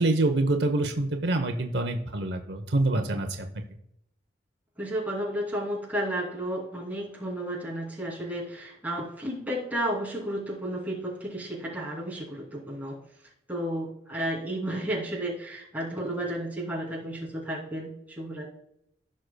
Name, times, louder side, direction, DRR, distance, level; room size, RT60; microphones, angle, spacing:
voice 1, 0.0-3.5, right 2 dB, 75° right, 5 dB, 0.8 m, -26 dB
voice 2, 4.8-13.0 13.5-18.5, right 1 dB, 10° right, -4 dB, 2.8 m, -32 dB
15.5 x 6.5 x 2.3 m, 0.76 s
head